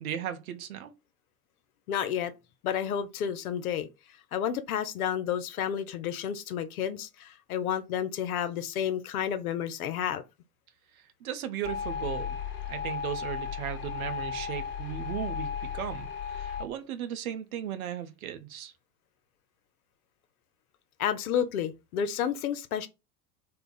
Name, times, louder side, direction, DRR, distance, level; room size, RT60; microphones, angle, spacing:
voice 1, 0.0-0.9 11.2-12.4 12.7-18.7, right 10 dB, 60° right, 0.6 m, -36 dB
voice 2, 1.9-2.3 2.6-3.9 4.3-10.2 21.0-22.9, left 9 dB, 65° left, 0.5 m, -31 dB
sound 1, 11.6-16.7, left 7 dB, 25° left, 0.6 m, -35 dB
2.3 x 2.1 x 3.8 m
figure-of-eight pair, 75°, 49 cm